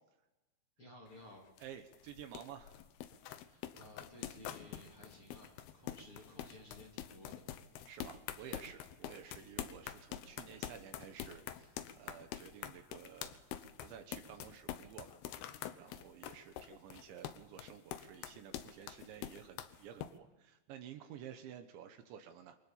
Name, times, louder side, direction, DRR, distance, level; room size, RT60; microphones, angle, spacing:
voice 1, 0.8-1.5 3.4-7.4, left 1 dB, 35° left, -1 dB, 2.6 m, -56 dB
sound 1, 1.1-20.1, left 11 dB, 75° left, 2.4 m, -46 dB
voice 2, 1.6-2.8 7.9-22.6, right 9 dB, 70° right, 7 dB, 3.3 m, -52 dB
27.5 x 23.5 x 7.3 m, 1.1 s
omnidirectional pair, 5.8 m